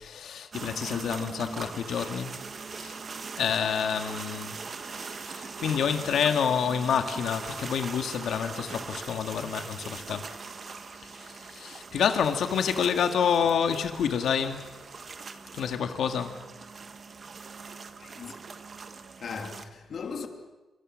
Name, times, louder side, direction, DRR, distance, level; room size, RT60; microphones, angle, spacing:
voice 1, 0.0-2.4 2.8-3.0 3.4-4.6 4.9-10.3 10.7-14.7 15.5-16.4, left 7 dB, 65° left, 2.0 m, -28 dB
sound 1, 0.5-19.6, right 4 dB, 30° right, 1.5 m, -41 dB
voice 2, 18.0-18.3 19.2-20.3, left 5 dB, 45° left, 2.9 m, -37 dB
29.0 x 25.5 x 6.5 m
wide cardioid pair, 175°, 0 cm